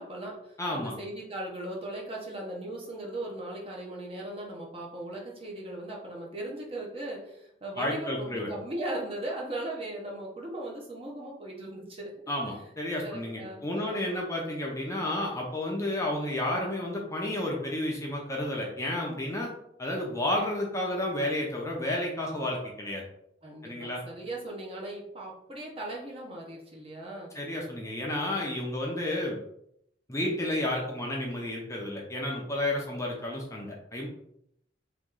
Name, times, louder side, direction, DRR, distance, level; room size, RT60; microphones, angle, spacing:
voice 1, 0.0-12.1 13.0-14.2 23.4-27.3, right 1 dB, 30° right, -2 dB, 1.0 m, -38 dB
voice 2, 0.6-0.9 7.8-8.5 12.3-19.5 19.8-23.0 23.6-24.0 27.3-29.4 30.1-34.1, left 1 dB, 15° left, -2 dB, 0.7 m, -31 dB
3.1 x 3.1 x 3.7 m, 0.75 s
head